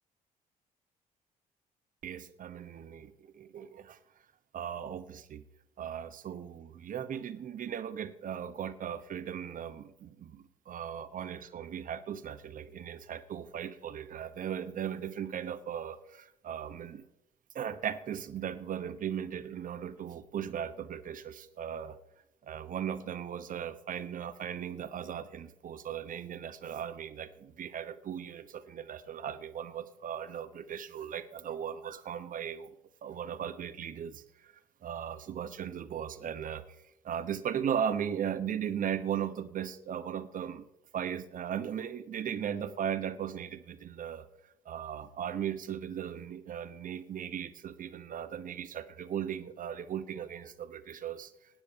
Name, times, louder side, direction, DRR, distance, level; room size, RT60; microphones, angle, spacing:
voice 1, 2.0-4.0 4.5-5.4 5.8-17.0 17.5-22.0 22.4-32.7 33.0-34.5 34.8-36.6 37.0-40.7 40.9-44.3 44.6-51.3, right 9 dB, 45° right, 13 dB, 1.0 m, -37 dB
17.0 x 9.5 x 4.6 m, 0.83 s
figure-of-eight pair, 50°, 19 cm